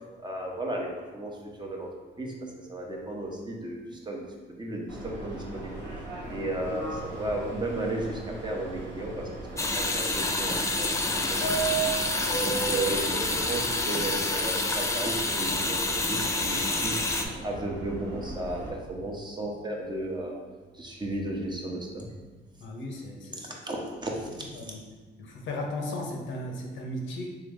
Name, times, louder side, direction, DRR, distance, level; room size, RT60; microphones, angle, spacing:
voice 1, 0.2-1.3 1.6-1.9 2.2-2.3 2.7-5.8 6.3-9.3 9.5-11.4 12.0-16.9 17.4-20.3 20.8-22.1 23.4-24.3 24.6-24.7, right 1 dB, 20° right, -1 dB, 0.8 m, -34 dB
Subway metro underground, 4.9-18.7, right 4 dB, 85° right, 1.3 m, -37 dB
voice 2, 6.2-6.5 22.6-23.6 24.5-24.8 25.2-27.3, left 1 dB, 75° left, 1 dB, 0.8 m, -36 dB
sound 1, 9.6-17.3, left 2 dB, 15° left, 0.4 m, -28 dB
3.7 x 3.0 x 3.5 m, 1.3 s
cardioid pair, 90°, 20 cm